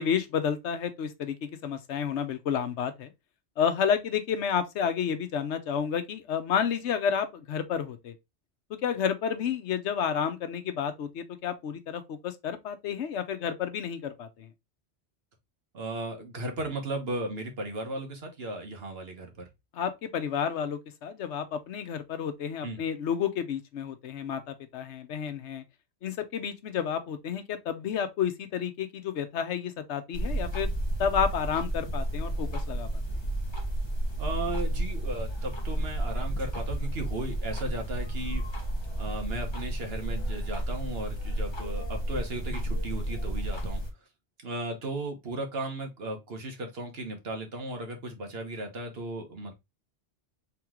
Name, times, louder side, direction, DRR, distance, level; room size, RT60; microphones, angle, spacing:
voice 1, 0.0-3.1 3.6-8.1 8.7-14.5 19.7-25.6 26.0-30.7 31.0-32.9, left 7 dB, 90° left, 1.0 m, -30 dB
voice 2, 15.7-19.4 22.6-22.8 34.2-38.4 39.0-43.8 44.4-49.5, right 2 dB, 65° right, 1.3 m, -36 dB
sound 1, 30.1-43.9, right 1 dB, 25° left, 1.1 m, -32 dB
3.8 x 3.0 x 3.5 m
omnidirectional pair, 1.2 m